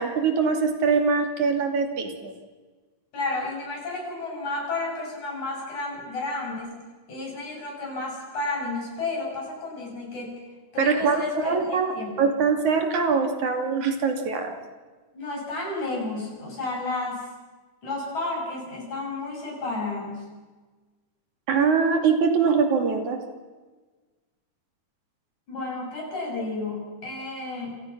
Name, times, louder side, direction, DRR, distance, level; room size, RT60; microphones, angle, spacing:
voice 1, 0.0-2.3 10.8-14.5 21.5-23.2, right 5 dB, 70° right, 4 dB, 3.9 m, -23 dB
voice 2, 3.1-6.7 7.1-10.4 10.7-12.2 15.1-17.3 17.8-20.3 25.5-27.7, left 2 dB, 65° left, -1 dB, 9.4 m, -32 dB
28.5 x 28.5 x 6.1 m, 1.3 s
omnidirectional pair, 3.6 m